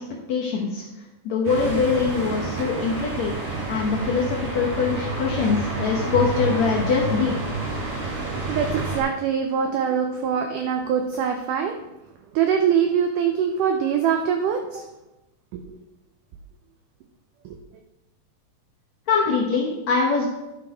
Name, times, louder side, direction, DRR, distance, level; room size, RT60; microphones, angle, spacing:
voice 1, 0.3-0.8 1.3-3.3 3.7-7.3 19.1-20.3, left 5 dB, 65° left, -1 dB, 1.8 m, -23 dB
sound 1, 1.4-9.0, right 3 dB, 60° right, 4.7 m, -29 dB
voice 2, 8.5-11.8 12.4-14.8 15.5-15.6, right 7 dB, 85° right, 5 dB, 1.8 m, -23 dB
11.0 x 6.0 x 4.9 m, 1.0 s
omnidirectional pair, 4.5 m